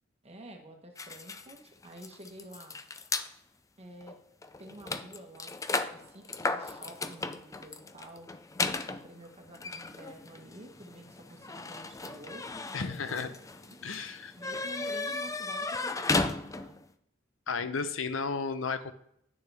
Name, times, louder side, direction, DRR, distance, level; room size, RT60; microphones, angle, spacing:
voice 1, 0.2-2.8 3.8-4.2 4.6-5.5 5.9-8.3 8.9-13.9 14.4-16.7, right 1 dB, 30° right, 3 dB, 1.4 m, -49 dB
sound 1, 1.0-3.3 4.0-4.1 4.4-16.9, left 3 dB, 15° left, 0.4 m, -35 dB
voice 2, 12.7-13.3 13.8-14.3 17.5-18.9, left 5 dB, 75° left, 11 dB, 0.7 m, -33 dB
10.0 x 6.7 x 3.4 m, 0.71 s
head